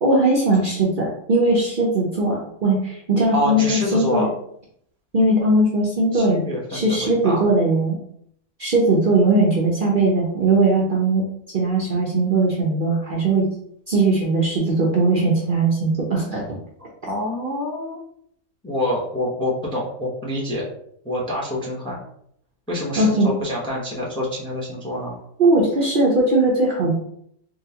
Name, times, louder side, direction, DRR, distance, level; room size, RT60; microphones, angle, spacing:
voice 1, 0.0-4.3 5.1-6.4 6.7-8.0 8.6-11.2 11.5-13.5 13.9-16.6 23.0-23.3 25.4-26.9, right 2 dB, 50° right, -3 dB, 0.7 m, -19 dB
voice 2, 3.3-4.3 6.1-7.4 17.1-18.0 18.6-20.6 21.0-22.0 22.7-25.2, left 1 dB, 5° left, -4 dB, 0.6 m, -26 dB
3.7 x 2.4 x 2.8 m, 0.69 s
omnidirectional pair, 1.4 m